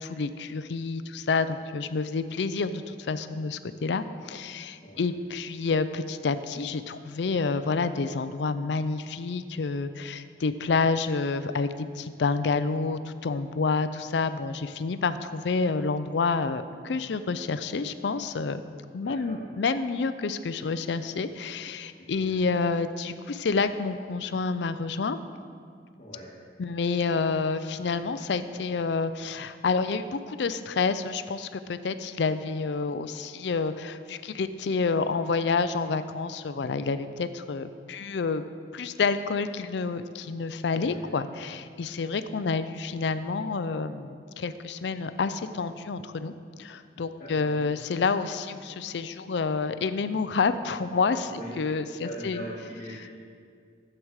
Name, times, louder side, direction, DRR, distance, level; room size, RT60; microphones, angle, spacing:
voice 1, 0.0-18.6 18.9-25.2 26.6-38.4 38.7-51.3 51.6-52.5, left 4 dB, 70° left, 11 dB, 0.5 m, -29 dB
voice 2, 19.0-19.4 21.9-22.3 26.0-26.3 40.8-41.0 42.0-42.1 47.2-47.7 51.2-51.5 52.0-53.1, equal, 40° left, -9 dB, 1.9 m, -41 dB
13.0 x 7.9 x 4.8 m, 2.1 s
head